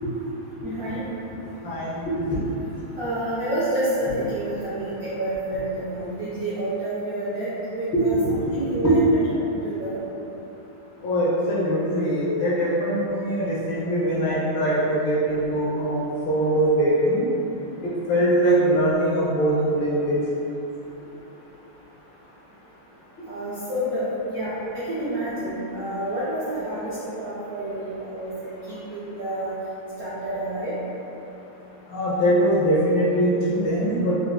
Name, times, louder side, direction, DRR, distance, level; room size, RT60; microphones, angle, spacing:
voice 1, 0.6-1.0 3.0-7.5 7.7-9.0 9.6-10.0 23.2-29.5 30.0-30.7, right 1 dB, 70° right, -13 dB, 0.8 m, -29 dB
voice 2, 1.6-2.4 7.9-8.4 8.8-8.9 11.0-17.2 17.8-20.2 31.9-34.2, right 1 dB, 70° left, -7 dB, 1.3 m, -22 dB
4.3 x 2.1 x 2.3 m, 2.9 s
omnidirectional pair, 2.4 m